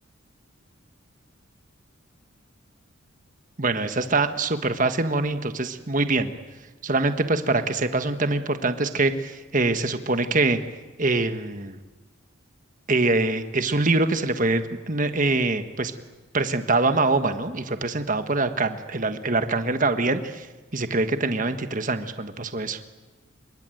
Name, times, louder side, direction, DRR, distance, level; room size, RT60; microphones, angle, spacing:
voice 1, 3.6-6.3 6.8-10.6 11.0-11.8 12.9-15.9 16.3-20.5 20.7-22.8, right 3 dB, 40° right, 9 dB, 1.4 m, -24 dB
26.5 x 23.5 x 9.2 m, 1.2 s
head